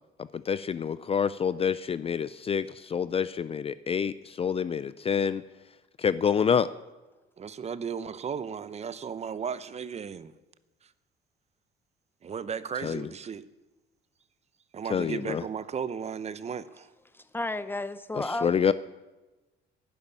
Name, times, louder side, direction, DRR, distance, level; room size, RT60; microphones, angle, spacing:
voice 1, 0.3-5.4 6.0-6.7 12.8-13.1 14.9-15.4 18.2-18.7, left 7 dB, 30° left, 0.5 m, -27 dB
voice 2, 7.4-10.3 10.8-10.9 12.2-13.5 14.7-16.9, right 7 dB, 35° right, 0.7 m, -35 dB
voice 3, 17.1-18.5, left 2 dB, 10° left, 0.8 m, -32 dB
11.5 x 11.0 x 9.9 m
cardioid pair, 120°, 19 cm